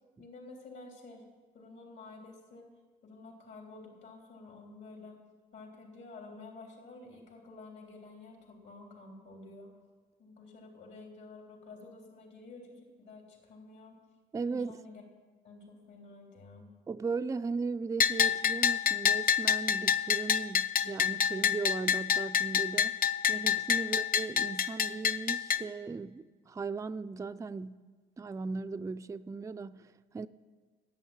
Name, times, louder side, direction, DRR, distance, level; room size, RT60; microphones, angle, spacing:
voice 1, 0.2-1.2 1.5-2.7 3.0-5.2 5.5-9.7 10.2-14.0 14.5-15.0 15.4-16.7 23.8-23.9, left 3 dB, 65° left, 3.5 m, -50 dB
voice 2, 14.3-14.8 16.9-23.0 23.3-27.9 28.2-30.3, right 4 dB, 15° right, 0.4 m, -37 dB
Bell, 18.0-25.6, left 8 dB, 45° left, 0.5 m, -28 dB
11.0 x 8.5 x 8.7 m
cardioid pair, 90°, 20 cm